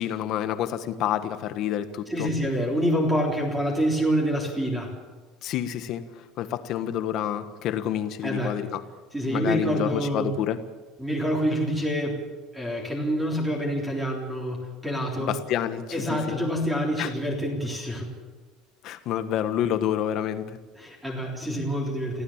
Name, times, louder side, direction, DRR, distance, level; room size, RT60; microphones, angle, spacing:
voice 1, 0.0-2.3 5.4-6.0 6.4-8.8 9.3-10.6 15.2-15.8 16.1-16.4 17.0-17.1 18.8-20.6, left 10 dB, 45° left, 10 dB, 1.5 m, -28 dB
voice 2, 2.1-4.9 8.2-8.5 9.1-10.3 11.0-12.2 12.5-15.3 15.9-18.1 20.8-22.2, equal, 5° right, 0 dB, 3.5 m, -27 dB
24.5 x 16.0 x 7.4 m, 1.3 s
cardioid pair, 170°, 0 cm